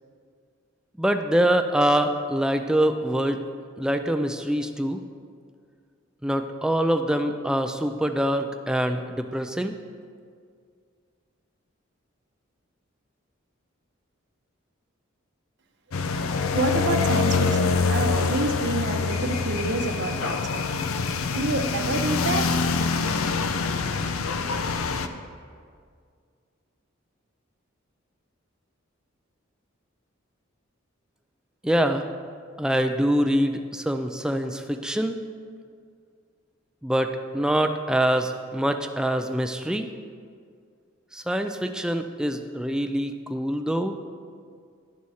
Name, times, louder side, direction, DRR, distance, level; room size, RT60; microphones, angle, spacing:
voice 1, 1.0-3.4 3.8-5.0 6.2-9.7 31.6-32.0 32.6-35.2 36.8-39.9 41.1-44.0, right 1 dB, 5° right, 6 dB, 0.3 m, -24 dB
sound 1, 15.9-25.1, left 4 dB, 90° left, 0.5 m, -25 dB
voice 2, 16.5-20.7 21.3-22.5, right 2 dB, 55° right, 5 dB, 0.8 m, -28 dB
11.5 x 4.1 x 6.3 m, 2.1 s
head